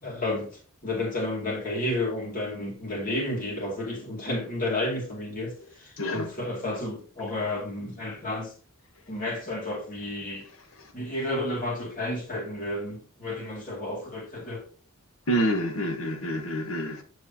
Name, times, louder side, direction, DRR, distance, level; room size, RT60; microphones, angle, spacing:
voice 1, 0.0-0.5 0.8-8.5 9.1-10.5 10.9-14.6, left 1 dB, 40° left, 2.3 m, -31 dB
voice 2, 6.0-6.3 15.3-17.0, equal, 85° left, 1.2 m, -27 dB
7.3 x 6.3 x 2.8 m
head